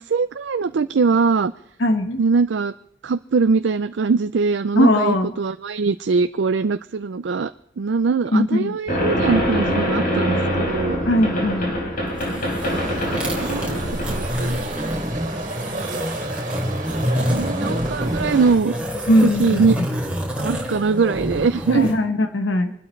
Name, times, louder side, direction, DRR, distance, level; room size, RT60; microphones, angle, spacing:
voice 1, 0.0-1.5 2.2-2.7 3.0-7.5 7.8-11.0 12.2-12.4 13.1-13.8 14.1-14.6 15.8-16.0 17.3-18.8 19.2-19.8 20.4-21.9, right 4 dB, 65° right, 11 dB, 0.4 m, -22 dB
voice 2, 1.8-2.2 4.8-5.3 8.3-8.8 11.0-11.7 19.1-19.9 21.7-22.7, left 1 dB, 80° left, 7 dB, 1.2 m, -19 dB
sound 1, 8.9-14.9, equal, 50° left, 3.7 m, -24 dB
sound 2, 12.1-22.0, equal, 5° right, 3.3 m, -27 dB
sound 3, 12.6-18.5, right 2 dB, 45° right, 2.7 m, -32 dB
26.0 x 12.5 x 3.2 m, 0.73 s
head